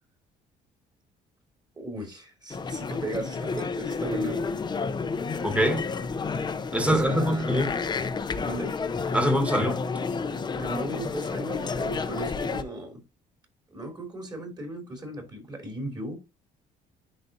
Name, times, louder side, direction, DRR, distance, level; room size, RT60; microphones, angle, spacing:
voice 1, 1.8-4.7 6.2-6.3 6.9-7.8 8.4-8.8 10.6-13.0 13.7-16.2, right 1 dB, 25° right, 3.2 m, -36 dB
sound 1, 2.5-12.6, left 4 dB, 25° left, 0.7 m, -30 dB
voice 2, 5.4-5.8 6.7-7.7 9.1-9.8, equal, 5° right, 1.9 m, -24 dB
10.5 x 4.3 x 2.7 m
cardioid pair, 110°, 17 cm